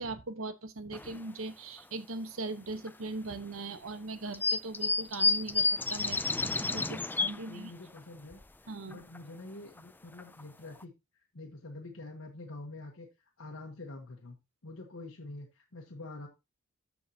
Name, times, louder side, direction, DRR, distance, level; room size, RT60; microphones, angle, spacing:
voice 1, 0.0-7.7 8.7-9.0, right 3 dB, 75° right, 1.2 m, -40 dB
sound 1, 0.9-1.2 1.8-1.9 2.9-3.0 4.3-7.5 8.0-8.1 8.3-8.4 8.9-9.2 9.8-9.9 10.2-10.4 10.8-10.9, left 3 dB, 10° left, 0.4 m, -30 dB
voice 2, 6.9-10.9 11.3-13.1 13.4-14.4 14.6-16.3, left 2 dB, 75° left, 1.3 m, -46 dB
13.0 x 5.5 x 2.9 m
head